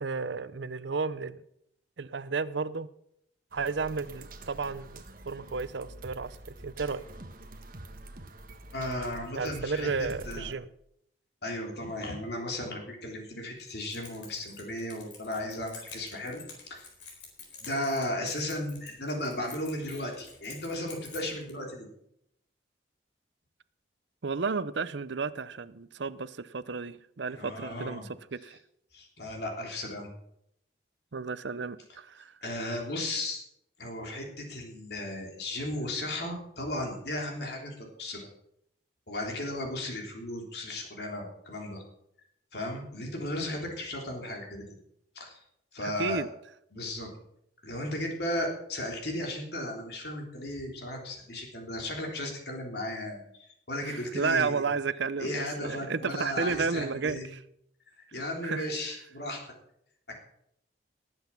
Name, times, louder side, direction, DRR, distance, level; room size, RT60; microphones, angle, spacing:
voice 1, 0.0-1.4 2.0-2.9 3.5-6.4 6.6-7.0 9.4-10.7 24.2-28.0 28.3-28.6 31.1-32.3 45.8-46.3 53.8-57.4 58.4-58.7, right 4 dB, 70° right, 16 dB, 0.6 m, -32 dB
sound 1, 3.5-10.5, right 1 dB, 45° right, 1.4 m, -46 dB
voice 2, 8.7-9.9 10.3-10.5 11.4-16.4 16.7-16.8 17.6-21.9 27.3-28.1 28.9-30.1 32.4-33.4 33.8-38.3 39.1-41.8 42.5-44.6 45.2-45.4 45.7-46.2 46.7-47.1 47.6-54.7 55.2-57.2 58.1-59.4, left 1 dB, 55° left, 1 dB, 3.5 m, -35 dB
Keys jangling, 13.6-21.5, left 4 dB, 75° left, 4.1 m, -49 dB
19.0 x 8.1 x 5.8 m, 0.74 s
head